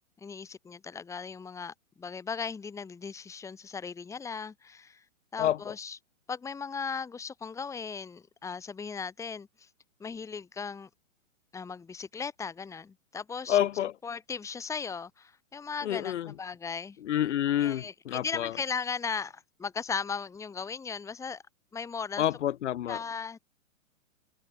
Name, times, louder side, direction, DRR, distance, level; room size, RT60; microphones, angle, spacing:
voice 1, 0.2-5.0 5.3-6.0 6.3-9.7 10.0-10.9 11.5-13.6 14.0-17.0 17.6-21.4 21.7-22.2 22.9-23.4, left 5 dB, 5° left, 2.5 m, -37 dB
voice 2, 5.4-5.7 13.5-13.9 15.8-16.3 17.0-18.5 22.2-23.0, left 11 dB, 55° left, 3.3 m, -28 dB
hypercardioid pair, 155°, 41 cm